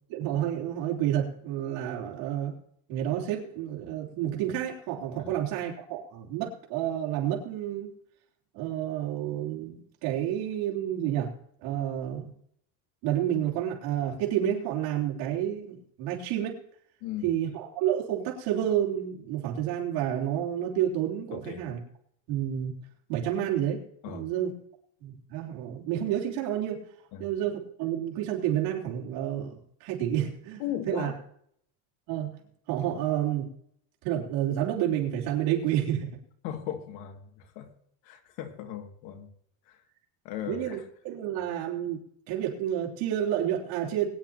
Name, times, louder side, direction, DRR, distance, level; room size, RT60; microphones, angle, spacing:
voice 1, 0.1-2.6 2.9-7.9 8.5-11.3 11.6-12.3 13.0-16.6 17.2-21.8 22.3-22.7 23.1-24.5 25.0-26.8 27.2-31.1 32.1-32.4 32.7-33.5 34.0-36.2 40.5-40.8 41.0-42.0 42.3-44.1, right 11 dB, 75° right, -2 dB, 3.4 m, -30 dB
voice 2, 17.0-17.3 21.3-21.6 24.0-24.3 27.1-27.3 30.6-31.2 36.4-37.7 38.0-39.3 39.7-39.8 40.2-40.9, left 10 dB, 85° left, 4 dB, 2.4 m, -37 dB
21.5 x 10.5 x 2.9 m, 0.68 s
cardioid pair, 155°, 47 cm